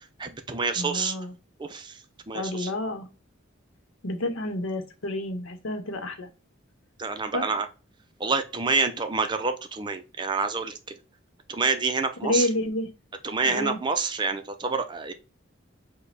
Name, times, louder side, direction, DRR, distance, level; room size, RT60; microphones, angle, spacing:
voice 1, 0.2-1.1 1.6-2.0 2.3-2.7 7.0-7.7 8.2-10.7 11.5-12.5 13.2-15.1, right 4 dB, 20° right, 8 dB, 0.4 m, -27 dB
voice 2, 0.8-1.3 2.3-3.1 4.0-6.3 7.3-7.5 12.2-12.9 13.4-13.8, left 1 dB, 85° left, 7 dB, 0.9 m, -29 dB
5.1 x 2.2 x 4.0 m, 0.32 s
head